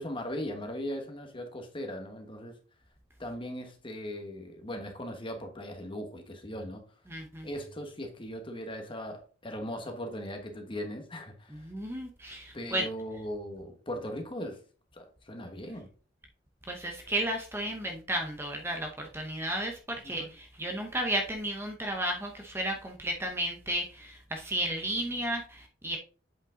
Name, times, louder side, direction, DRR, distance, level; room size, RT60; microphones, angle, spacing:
voice 1, 0.0-2.6 3.2-6.8 7.4-11.7 12.5-14.6 14.9-15.9 20.0-20.3, equal, 25° left, 4 dB, 1.4 m, -39 dB
voice 2, 7.1-7.5 11.5-12.9 16.7-26.0, right 1 dB, 15° right, 2 dB, 0.8 m, -33 dB
7.9 x 5.2 x 3.8 m, 0.39 s
head